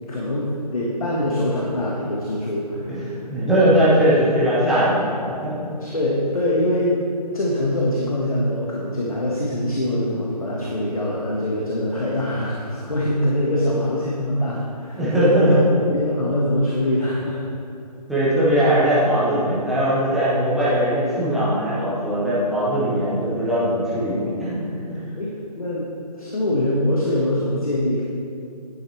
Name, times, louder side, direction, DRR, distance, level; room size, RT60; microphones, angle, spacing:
voice 1, 0.1-3.3 5.8-7.0 7.3-15.6 15.9-17.4 25.2-28.0, left 1 dB, 60° left, -4 dB, 1.5 m, -23 dB
voice 2, 3.3-5.1 5.4-5.7 13.4-13.8 15.0-15.6 18.1-24.6, right 1 dB, ahead, -10 dB, 1.0 m, -20 dB
11.0 x 8.3 x 3.3 m, 2.5 s
figure-of-eight pair, 150°, 21 cm